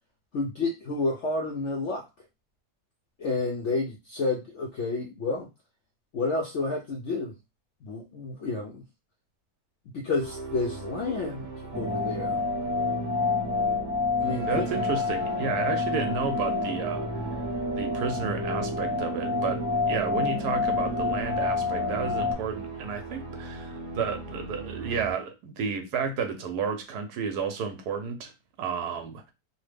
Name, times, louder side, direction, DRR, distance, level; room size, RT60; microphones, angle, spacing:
voice 1, 0.3-2.1 3.2-5.5 6.1-7.3 7.8-8.8 9.9-12.4 14.2-14.8, left 3 dB, 70° left, 1 dB, 0.6 m, -30 dB
sound 1, 10.2-25.1, right 3 dB, 50° right, 0.5 m, -40 dB
sound 2, 11.7-22.3, left 3 dB, 30° left, 0.5 m, -28 dB
voice 2, 14.5-17.1 17.7-19.6 19.9-28.3 28.6-29.2, right 6 dB, 75° right, 6 dB, 1.1 m, -31 dB
3.0 x 2.1 x 3.3 m, 0.24 s
omnidirectional pair, 1.8 m